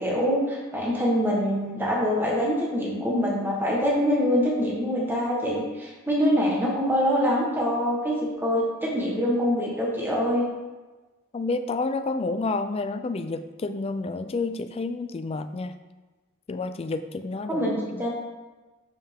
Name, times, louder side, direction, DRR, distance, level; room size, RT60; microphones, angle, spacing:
voice 1, 0.0-10.4 17.5-18.1, equal, 10° right, -4 dB, 1.1 m, -24 dB
voice 2, 11.3-15.8 16.5-18.0, left 3 dB, 30° left, 9 dB, 0.3 m, -30 dB
6.6 x 5.5 x 3.5 m, 1.2 s
head